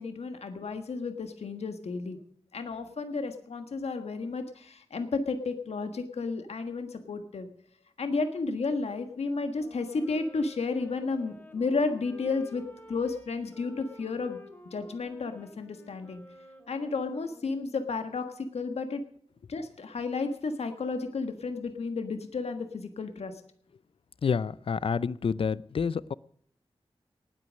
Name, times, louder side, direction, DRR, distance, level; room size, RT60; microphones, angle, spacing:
voice 1, 0.0-2.2 2.5-7.5 8.0-12.6 12.9-14.4 14.7-16.2 16.7-19.0 19.5-23.3, left 4 dB, 90° left, 7 dB, 1.5 m, -32 dB
Wind instrument woodwind instrument, 9.5-17.8, left 1 dB, 20° left, 3.9 m, -52 dB
voice 2, 24.2-26.1, left 6 dB, 60° left, 20 dB, 0.5 m, -28 dB
18.5 x 8.7 x 6.3 m, 0.63 s
wide cardioid pair, 100°, 10 cm